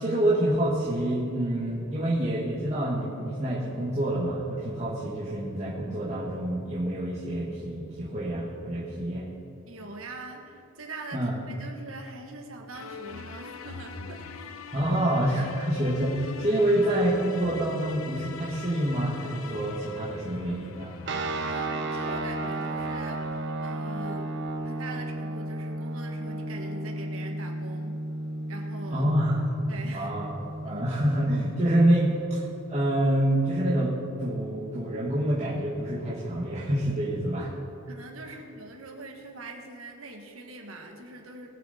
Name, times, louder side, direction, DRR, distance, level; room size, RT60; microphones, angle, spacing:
voice 1, 0.0-9.2 11.1-11.4 14.7-20.9 28.9-29.4 29.9-30.3 30.6-32.4 32.7-37.5, right 1 dB, 30° right, -9 dB, 1.8 m, -27 dB
voice 2, 9.7-14.5 21.3-24.3 24.6-28.0 28.5-29.1 29.7-30.1 30.6-30.8 37.9-41.5, right 2 dB, 75° right, 2 dB, 1.5 m, -42 dB
sound 1, 12.7-24.1, left 5 dB, 70° left, 0.6 m, -43 dB
sound 2, 21.1-32.3, right 2 dB, 55° right, 1.0 m, -34 dB
20.5 x 7.1 x 4.3 m, 2.7 s
head